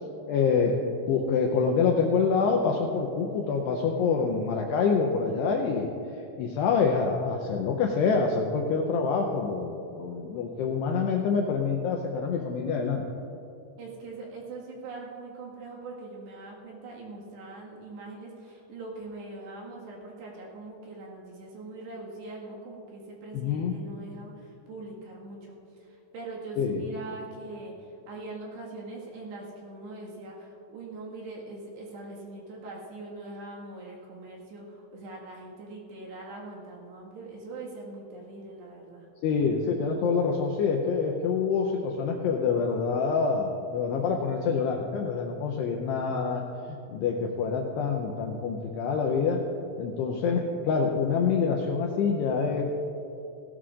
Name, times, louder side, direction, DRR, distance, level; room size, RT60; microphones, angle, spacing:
voice 1, 0.3-0.8 1.1-5.9 6.4-13.1 23.3-23.7 26.6-26.8 39.2-46.4 46.7-49.4 49.8-52.6, left 5 dB, 90° left, 1 dB, 2.4 m, -26 dB
voice 2, 13.8-39.1 46.0-46.3, right 2 dB, 65° right, -3 dB, 3.7 m, -42 dB
17.0 x 17.0 x 2.5 m, 2.9 s
omnidirectional pair, 5.8 m